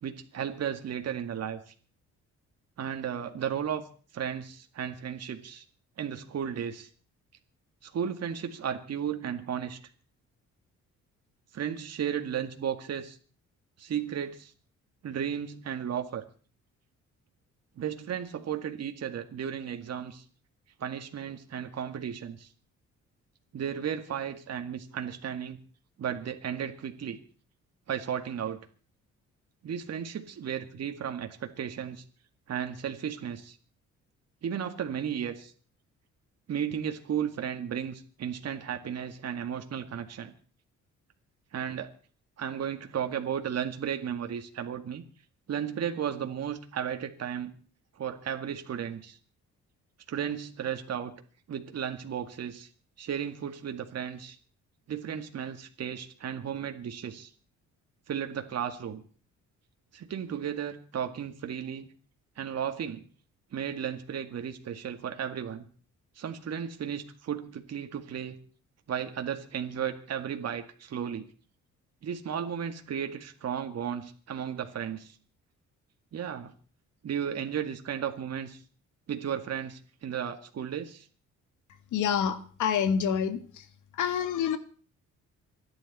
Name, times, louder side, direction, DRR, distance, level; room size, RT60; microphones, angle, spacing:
voice 1, 0.0-1.6 2.8-3.8 4.1-5.6 6.0-6.9 7.8-9.8 11.5-13.2 13.8-14.5 15.0-16.2 17.8-20.2 20.8-22.5 23.5-25.6 26.0-27.2 27.9-28.6 29.6-32.0 32.5-33.6 34.4-35.5 36.5-40.3 41.5-41.9 42.4-45.0 45.5-47.5 48.0-49.2 50.1-51.1 51.5-52.7 53.0-54.4 54.9-57.3 58.1-59.0 59.9-61.9 62.4-63.0 63.5-65.6 66.2-68.4 68.9-71.3 72.0-75.2 76.1-76.5 77.0-78.6 79.1-81.1, right 8 dB, 55° right, 5 dB, 2.1 m, -34 dB
voice 2, 81.9-83.7 83.9-84.6, left 8 dB, 80° left, 10 dB, 2.0 m, -27 dB
27.0 x 11.0 x 4.3 m, 0.41 s
cardioid pair, 90°, 30 cm